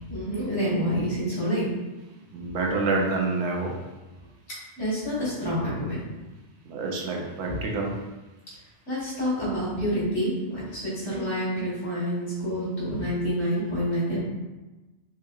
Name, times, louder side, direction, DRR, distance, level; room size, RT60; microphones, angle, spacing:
voice 1, 0.1-1.7 4.8-6.0 8.9-14.2, equal, 85° left, -9 dB, 2.0 m, -28 dB
voice 2, 2.3-3.8 6.7-8.0, right 3 dB, 85° right, 1 dB, 0.9 m, -27 dB
4.5 x 2.8 x 2.3 m, 1.1 s
omnidirectional pair, 1.1 m